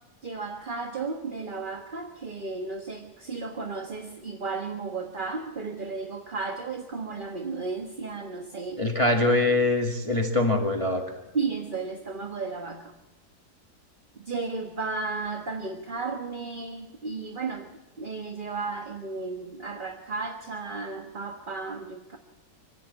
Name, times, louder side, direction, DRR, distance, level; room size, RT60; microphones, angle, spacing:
voice 1, 0.2-8.8 11.3-12.9 14.2-17.7 18.0-22.2, right 4 dB, 30° right, 4 dB, 1.5 m, -34 dB
voice 2, 8.8-11.0, left 2 dB, 20° left, 1 dB, 2.0 m, -23 dB
26.0 x 15.5 x 8.5 m, 1.1 s
omnidirectional pair, 1.7 m